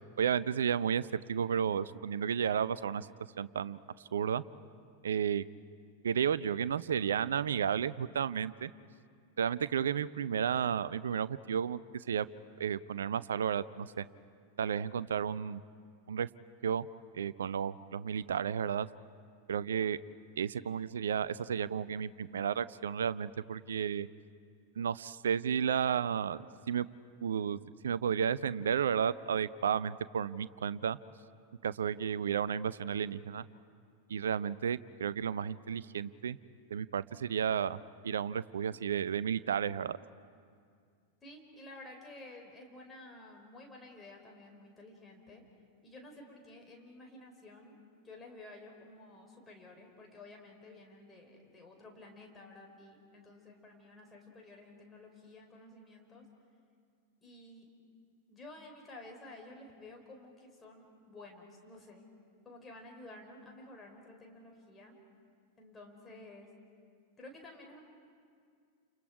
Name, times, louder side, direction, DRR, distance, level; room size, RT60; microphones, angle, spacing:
voice 1, 0.2-3.1 3.4-3.8 4.1-4.4 5.0-5.4 6.0-8.7 9.4-12.3 12.6-14.0 14.6-15.6 16.1-16.3 16.6-16.9 17.1-18.9 19.5-20.0 20.4-24.1 24.8-26.9 27.2-31.0 31.6-33.5 34.1-36.4 36.7-40.0, right 8 dB, 65° right, 18 dB, 0.5 m, -32 dB
voice 2, 41.2-45.4 45.8-47.8 48.0-56.2 57.2-57.7 58.3-62.1 62.4-65.0 65.6-66.5 67.2-67.8, left 2 dB, 15° left, 1 dB, 4.6 m, -52 dB
29.5 x 29.0 x 4.8 m, 2.2 s
figure-of-eight pair, 90°, 0 cm